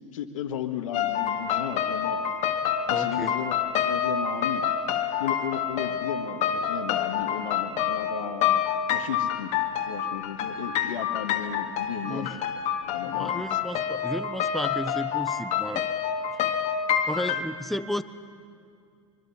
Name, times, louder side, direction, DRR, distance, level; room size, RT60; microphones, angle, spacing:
voice 1, 0.1-2.2 2.9-4.6 5.2-8.6 8.9-9.5 9.9-12.4 12.9-13.4, left 9 dB, 80° left, 5 dB, 1.6 m, -34 dB
sound 1, 0.9-17.4, left 8 dB, 45° left, 2.1 m, -27 dB
voice 2, 2.9-3.3 12.0-12.4 13.0-15.8 17.1-18.0, left 1 dB, ahead, 12 dB, 0.8 m, -33 dB
24.0 x 23.5 x 7.2 m, 2.4 s
hypercardioid pair, 115°, 17 cm